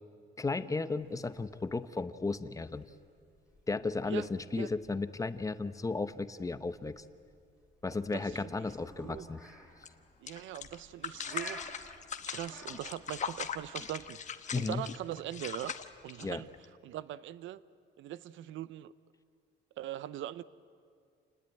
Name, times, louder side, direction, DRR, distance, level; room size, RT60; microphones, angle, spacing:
voice 1, 0.4-2.9 3.7-7.0 7.8-9.4 14.5-14.8 16.2-16.4, left 3 dB, 15° left, 12 dB, 0.8 m, -34 dB
sound 1, 1.0-14.2, equal, 5° right, 5.2 m, -54 dB
sound 2, 9.8-9.9 10.3-16.7, left 7 dB, 40° left, 1.1 m, -40 dB
voice 2, 10.2-11.7 12.3-14.2 14.6-15.7 16.0-16.5 16.8-17.6 18.0-18.9 19.8-20.4, right 13 dB, 80° right, 17 dB, 0.7 m, -41 dB
28.5 x 19.5 x 9.1 m, 2.3 s
cardioid pair, 145°, 20 cm